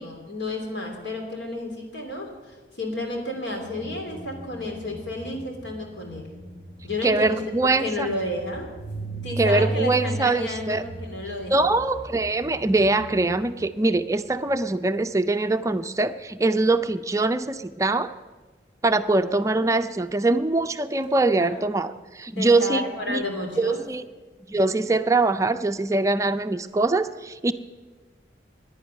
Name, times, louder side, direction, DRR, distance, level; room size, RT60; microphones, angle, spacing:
voice 1, 0.0-6.3 6.8-7.4 7.8-8.7 9.2-11.6 22.4-23.8, left 1 dB, 85° left, 2 dB, 3.0 m, -31 dB
sound 1, 3.3-14.8 21.0-21.1 21.4-21.6, right 2 dB, 50° left, 3.1 m, -37 dB
voice 2, 7.0-8.1 9.4-10.8 11.5-18.1 18.8-23.2 23.6-24.0 24.5-27.5, right 2 dB, 15° right, 10 dB, 0.4 m, -23 dB
11.0 x 10.0 x 9.0 m, 1.3 s
head